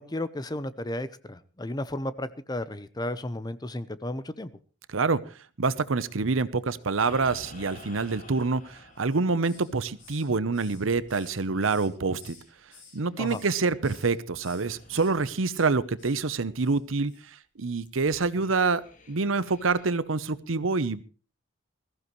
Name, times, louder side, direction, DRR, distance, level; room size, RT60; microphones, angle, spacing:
voice 1, 0.0-4.5 13.2-13.5, left 1 dB, 20° left, 14 dB, 0.7 m, -33 dB
voice 2, 4.9-5.2 5.6-12.4 12.9-17.1 17.6-21.0, right 4 dB, 90° right, 16 dB, 0.8 m, -26 dB
sound 1, 7.0-14.0 14.3-16.6 16.9-17.0 17.7-20.0, left 2 dB, 40° left, 2.1 m, -52 dB
Hiss, 9.0-9.7 10.0-12.4 12.7-13.5 13.8-14.1 14.4-15.1 15.4-15.7 16.0-16.2 16.6-16.8 17.1-17.2, left 5 dB, 70° left, 6.6 m, -53 dB
21.0 x 14.5 x 3.1 m, 0.36 s
head